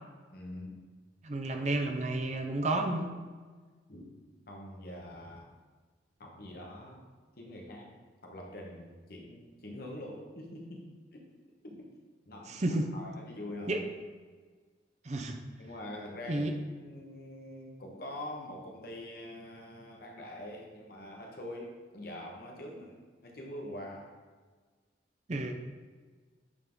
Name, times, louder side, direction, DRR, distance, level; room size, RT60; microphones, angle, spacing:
voice 1, 0.3-0.8 3.9-4.1 4.5-5.5 6.2-7.0 7.4-7.9 8.2-11.2 11.6-11.9 12.3-13.9 15.6-16.5 16.8-23.0 23.2-24.1, left 1 dB, 50° left, 0 dB, 1.0 m, -44 dB
voice 2, 1.2-3.1 12.5-12.9 13.7-13.8 15.0-15.4 16.3-16.5 25.3-25.5, right 2 dB, 35° right, 5 dB, 0.5 m, -31 dB
8.1 x 3.7 x 3.7 m, 1.4 s
head